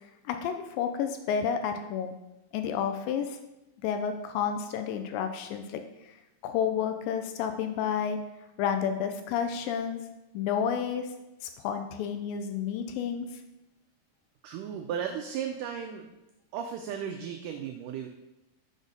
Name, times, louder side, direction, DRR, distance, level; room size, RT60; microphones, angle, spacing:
voice 1, 0.3-2.1 2.5-3.4 3.8-5.8 6.4-8.2 8.6-10.0 10.3-11.1 11.4-13.3, left 7 dB, 80° left, 6 dB, 2.1 m, -30 dB
voice 2, 14.4-16.1 16.5-18.1, right 8 dB, 90° right, 4 dB, 1.8 m, -35 dB
6.1 x 4.1 x 5.2 m, 0.95 s
omnidirectional pair, 4.2 m